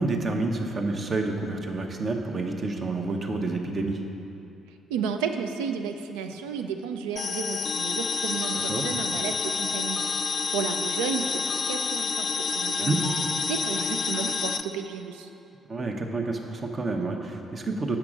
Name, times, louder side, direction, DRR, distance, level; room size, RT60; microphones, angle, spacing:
voice 1, 0.0-4.0 8.6-8.9 12.8-13.0 15.7-18.0, right 3 dB, 40° right, 3 dB, 0.9 m, -29 dB
voice 2, 4.9-10.0 10.5-15.3, right 6 dB, 75° right, 7 dB, 0.4 m, -32 dB
sound 1, 7.2-14.6, left 5 dB, 40° left, 0.3 m, -28 dB
7.6 x 5.8 x 5.0 m, 2.8 s
figure-of-eight pair, 45°, 0 cm